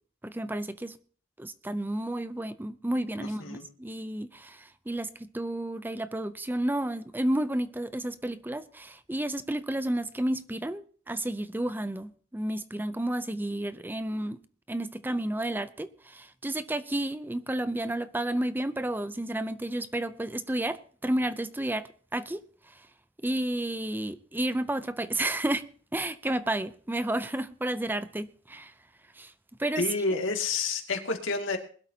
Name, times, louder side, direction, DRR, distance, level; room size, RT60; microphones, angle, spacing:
voice 1, 0.2-1.0 1.4-14.4 14.7-22.4 22.7-22.8 23.2-25.6 25.9-28.7 29.2-29.3 29.6-29.9, right 1 dB, 10° right, 0.5 m, -31 dB
voice 2, 3.2-3.6 29.8-31.6, left 3 dB, 85° left, 2.3 m, -29 dB
21.0 x 12.5 x 2.8 m
head